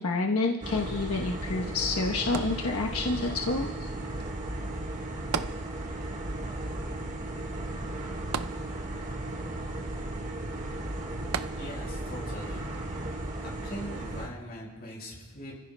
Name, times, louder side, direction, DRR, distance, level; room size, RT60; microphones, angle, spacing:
voice 1, 0.0-3.7, left 3 dB, 85° left, -1 dB, 1.1 m, -28 dB
sound 1, 0.6-14.3, right 1 dB, 35° right, 1.6 m, -35 dB
sound 2, 2.3-3.2 5.3-6.2 6.5-6.6 8.3-9.2 11.3-12.1 12.7-12.8, right 6 dB, 75° right, 0.5 m, -35 dB
voice 2, 11.6-13.0 13.4-15.6, equal, 45° left, -3 dB, 6.0 m, -42 dB
30.0 x 15.5 x 2.3 m, 1.4 s
head